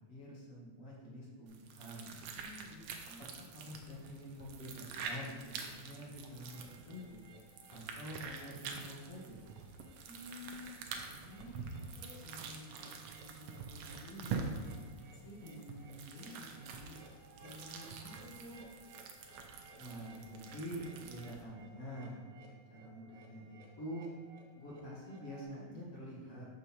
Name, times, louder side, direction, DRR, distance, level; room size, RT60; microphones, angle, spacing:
voice 1, 0.0-2.2 3.5-7.2 7.7-9.4 19.8-24.0 24.5-26.5, equal, 60° left, -6 dB, 2.0 m, -47 dB
sound 1, 1.5-21.4, right 5 dB, 90° right, 1.3 m, -46 dB
voice 2, 2.3-3.2 10.0-10.8 11.2-17.0 17.4-18.6, left 1 dB, 40° left, -6 dB, 1.3 m, -52 dB
sound 2, 6.4-25.5, right 3 dB, 75° right, 2.3 m, -60 dB
6.2 x 6.1 x 2.8 m, 1.5 s
omnidirectional pair, 3.4 m